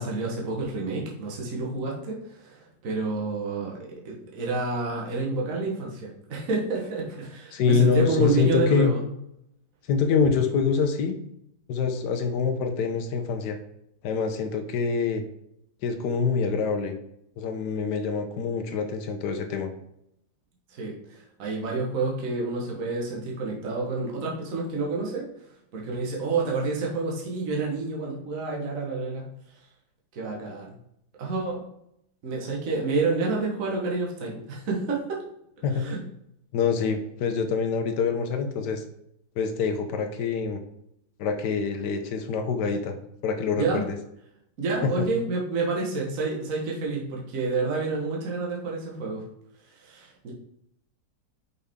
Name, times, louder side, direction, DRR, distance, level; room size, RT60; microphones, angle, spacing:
voice 1, 0.0-9.0 20.7-25.3 25.7-29.3 30.1-30.8 31.2-31.6 32.2-35.2 35.7-36.0 43.6-43.8 44.6-49.2 49.6-50.3, right 3 dB, 55° right, -2 dB, 1.5 m, -29 dB
voice 2, 7.5-8.9 9.9-11.1 11.7-13.6 14.0-15.2 15.8-16.9 17.4-19.7 35.6-35.9 36.5-38.8 39.4-40.6 41.2-43.0 43.2-43.8 44.8-44.9, left 5 dB, 85° left, 6 dB, 1.3 m, -25 dB
5.6 x 5.4 x 3.5 m, 0.75 s
omnidirectional pair, 1.7 m